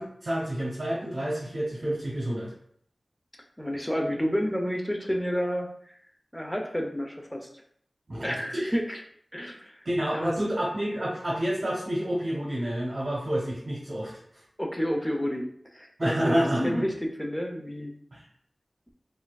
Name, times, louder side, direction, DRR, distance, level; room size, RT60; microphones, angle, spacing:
voice 1, 0.0-2.5 8.1-8.7 9.8-14.4 16.0-16.9 18.1-18.2, equal, 50° right, -5 dB, 0.9 m, -29 dB
voice 2, 3.6-5.7 6.3-7.5 8.2-9.0 9.3-9.9 10.1-10.3 14.6-15.5 15.7-16.9 17.2-17.9, equal, 10° left, 2 dB, 0.5 m, -30 dB
4.2 x 2.5 x 2.3 m, 0.64 s
wide cardioid pair, 70°, 0 cm